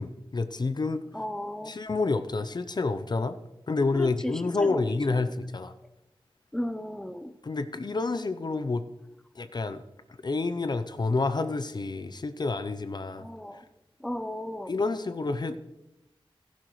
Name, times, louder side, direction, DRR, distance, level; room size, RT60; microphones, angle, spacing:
voice 1, 0.0-1.0 1.7-3.4 3.7-5.7 7.4-8.8 9.4-9.8 10.2-13.2 14.7-15.6, left 3 dB, 50° left, 11 dB, 0.6 m, -29 dB
voice 2, 1.1-1.8 3.9-5.3 6.5-7.3 13.2-13.6 14.0-14.7 15.5-15.6, left 1 dB, 5° left, 11 dB, 0.6 m, -35 dB
16.0 x 11.5 x 3.1 m, 0.95 s
wide cardioid pair, 80°, 10 cm